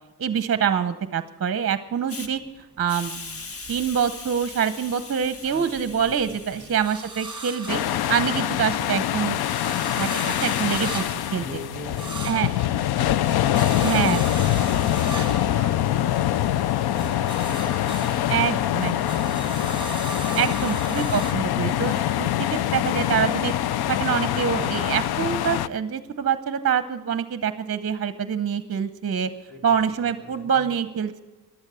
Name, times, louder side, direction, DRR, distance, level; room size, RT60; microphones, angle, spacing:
voice 1, 0.2-2.4 2.8-3.4 3.7-7.8 8.1-11.0 11.3-11.4 12.2-12.5 13.8-14.2 18.3-18.9 20.4-23.5 23.9-29.3 29.6-31.2, right 8 dB, 40° right, 11 dB, 0.8 m, -25 dB
Hiss, 2.1-2.3 2.9-8.0, left 4 dB, 35° left, 1.1 m, -40 dB
sound 1, 2.2-4.6 5.0-8.7 9.0-16.5 16.8-21.3, right 3 dB, 10° right, 2.0 m, -39 dB
voice 2, 5.4-6.7 11.4-13.3 13.8-20.7 29.5-29.7 30.0-30.8, left 1 dB, 5° left, 2 dB, 4.1 m, -41 dB
sound 2, 7.7-25.7, left 12 dB, 75° left, 0.6 m, -24 dB
13.5 x 12.0 x 6.8 m, 1.2 s
cardioid pair, 105°, 38 cm